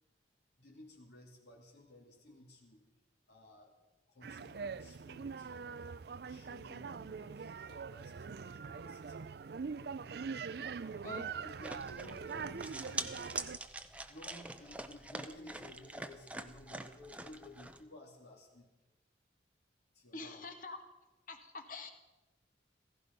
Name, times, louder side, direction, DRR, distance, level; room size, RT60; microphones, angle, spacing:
voice 1, 0.6-2.8 3.3-3.7 4.1-5.9 6.3-9.3 10.5-13.2 14.1-18.7 19.9-20.4, left 1 dB, 65° left, -2 dB, 3.0 m, -55 dB
sound 1, 4.2-13.6, right 5 dB, 60° right, 0.4 m, -43 dB
sound 2, 11.6-17.8, right 2 dB, 5° right, 0.7 m, -44 dB
voice 2, 20.1-20.8 21.3-21.9, left 3 dB, 45° left, 5 dB, 1.9 m, -45 dB
16.0 x 15.5 x 5.4 m, 1.1 s
head